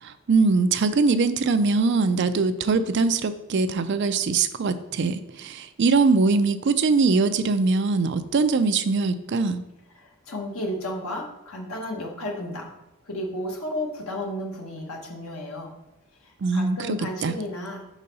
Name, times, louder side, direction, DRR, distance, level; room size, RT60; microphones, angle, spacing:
voice 1, 0.0-9.6 16.4-17.3, right 4 dB, 55° right, 11 dB, 0.4 m, -22 dB
voice 2, 9.9-12.8 13.1-15.7 16.2-17.8, left 1 dB, 85° left, 1 dB, 1.3 m, -33 dB
5.5 x 4.0 x 5.3 m, 0.96 s
head